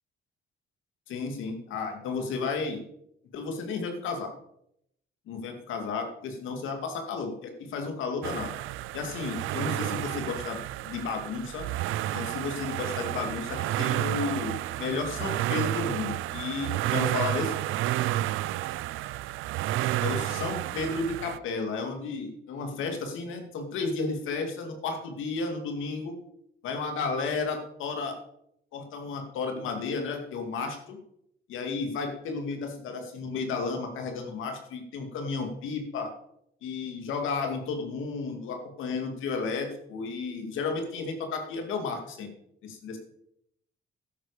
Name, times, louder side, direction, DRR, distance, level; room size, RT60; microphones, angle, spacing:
voice 1, 1.1-2.8 3.3-4.3 5.3-8.5 8.9-11.7 12.1-17.5 20.0-26.1 26.6-28.1 28.7-31.0 31.5-36.1 36.6-42.3 42.6-43.0, left 4 dB, 85° left, 5 dB, 2.5 m, -33 dB
sound 1, 8.2-21.4, right 14 dB, 85° right, 0.5 m, -31 dB
12.5 x 10.0 x 5.1 m, 0.74 s
cardioid pair, 90°, 20 cm